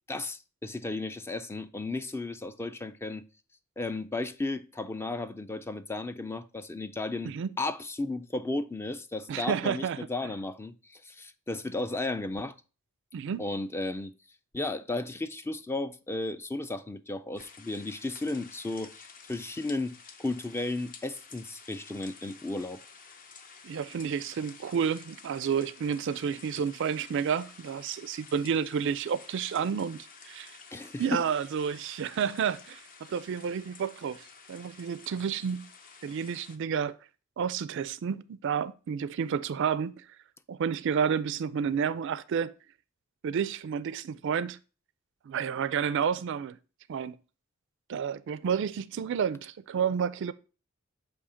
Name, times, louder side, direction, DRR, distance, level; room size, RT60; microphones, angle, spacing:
voice 1, 0.1-3.2 3.8-12.5 13.4-14.1 14.5-22.8 30.7-31.2, left 2 dB, 10° left, 0.3 m, -34 dB
voice 2, 9.3-10.0 13.1-13.4 23.6-30.0 30.3-30.6 31.0-35.7 36.0-36.9 37.4-40.0 40.5-42.5 43.2-44.6 45.3-46.6 46.9-47.2 47.9-50.3, right 7 dB, 65° right, 0.3 m, -30 dB
sound 1, 17.4-36.6, left 5 dB, 40° left, 0.7 m, -51 dB
6.9 x 2.8 x 4.9 m
head